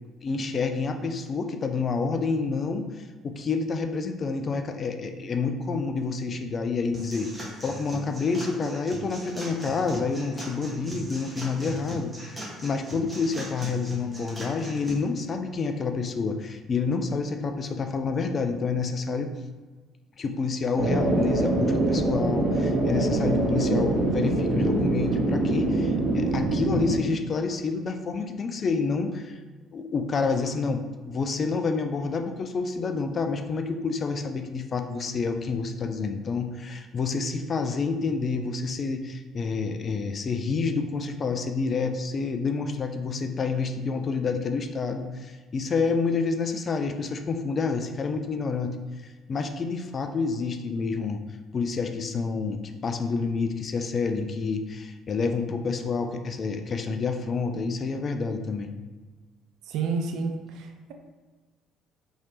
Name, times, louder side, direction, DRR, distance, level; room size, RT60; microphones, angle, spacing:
voice 1, 0.2-2.9 3.2-19.3 20.2-29.4 29.7-48.8 49.3-51.2 51.5-58.7, left 4 dB, 40° left, 6 dB, 0.3 m, -28 dB
sound 1, 6.9-14.9, right 2 dB, 15° right, 1.0 m, -40 dB
sound 2, 20.8-27.0, right 2 dB, 40° right, 1.0 m, -24 dB
voice 2, 59.7-60.9, right 4 dB, 60° right, 4 dB, 0.4 m, -30 dB
3.1 x 2.8 x 2.6 m, 1.3 s
figure-of-eight pair, 50°, 0 cm